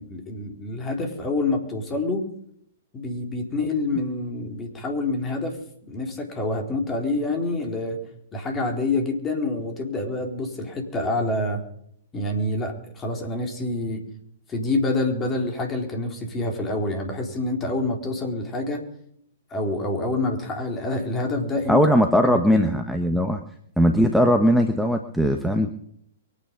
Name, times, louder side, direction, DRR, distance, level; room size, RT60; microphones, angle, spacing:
voice 1, 0.0-2.2 2.9-5.6 5.9-8.0 8.3-11.6 12.1-14.0 14.5-18.8 19.5-21.8 22.2-22.7, left 2 dB, 20° left, 2 dB, 4.1 m, -27 dB
voice 2, 21.7-23.4 23.8-25.7, equal, ahead, 5 dB, 1.2 m, -19 dB
24.0 x 9.6 x 5.4 m, 0.70 s
figure-of-eight pair, 115°, 0 cm